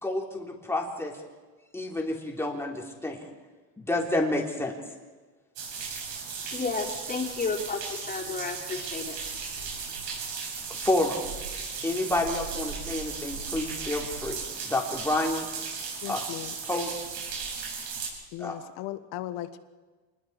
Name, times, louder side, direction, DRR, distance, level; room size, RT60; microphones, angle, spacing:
voice 1, 0.0-1.2 1.7-3.3 3.8-4.7 10.7-11.2 11.8-14.4 14.6-15.5 16.1-16.2 16.7-16.9 18.4-18.5, left 2 dB, 5° left, 0 dB, 3.5 m, -29 dB
sound 1, 5.6-18.1, right 5 dB, 75° right, 7.9 m, -36 dB
voice 2, 6.5-9.2 9.6-9.7, left 4 dB, 25° left, -2 dB, 4.3 m, -32 dB
voice 3, 16.0-16.5 18.3-19.6, left 14 dB, 85° left, 11 dB, 1.6 m, -37 dB
27.0 x 20.5 x 4.9 m, 1.3 s
cardioid pair, 135°, 38 cm